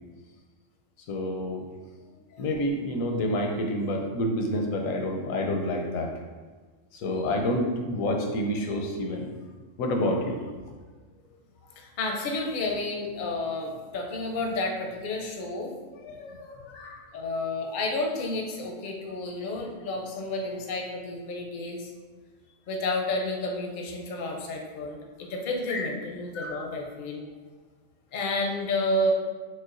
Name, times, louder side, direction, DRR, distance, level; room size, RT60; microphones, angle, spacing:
voice 1, 1.1-1.6 2.4-6.1 6.9-9.3 9.8-10.4 16.0-17.0 25.7-25.9 26.3-26.6, left 1 dB, 80° left, 2 dB, 1.0 m, -28 dB
voice 2, 11.7-15.7 17.1-21.9 22.7-27.2 28.1-29.1, left 2 dB, 55° left, 1 dB, 0.6 m, -31 dB
6.2 x 2.2 x 2.5 m, 1.4 s
omnidirectional pair, 1.4 m